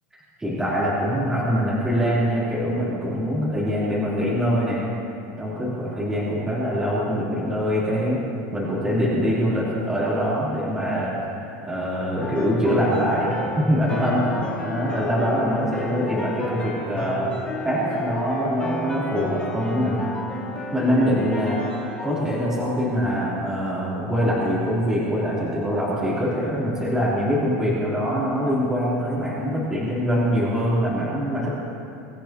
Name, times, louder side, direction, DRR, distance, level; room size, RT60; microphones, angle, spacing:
voice 1, 0.4-4.8 5.4-8.2 8.5-17.3 17.6-20.0 20.7-21.6 22.0-31.5, equal, 5° right, -9 dB, 3.6 m, -24 dB
sound 1, 12.2-23.2, left 1 dB, 15° left, 2.4 m, -32 dB
24.0 x 13.5 x 3.0 m, 2.6 s
supercardioid pair, 160°, 8 cm